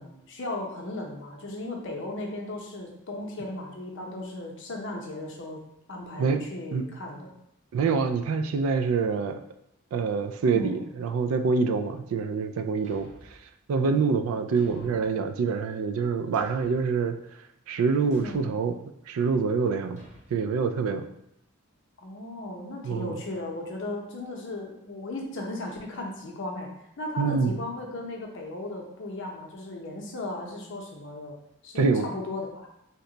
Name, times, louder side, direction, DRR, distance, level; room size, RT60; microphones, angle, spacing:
voice 1, 0.0-5.6 5.9-7.3 10.4-10.8 14.4-14.9 18.2-18.5 22.0-26.7 27.0-31.3 31.6-32.7, left 2 dB, 60° left, 1 dB, 0.6 m, -36 dB
voice 2, 7.7-9.4 9.9-13.4 13.7-17.2 17.7-18.8 19.1-20.0 20.3-21.1 22.8-23.2 27.2-27.6 31.8-32.1, right 5 dB, 75° right, 9 dB, 0.3 m, -26 dB
Thump thud, 12.8-13.5 14.6-15.2 16.3-16.9 18.1-18.5 20.0-20.3, right 1 dB, 35° right, 0.7 m, -52 dB
2.9 x 2.1 x 3.8 m, 0.81 s
head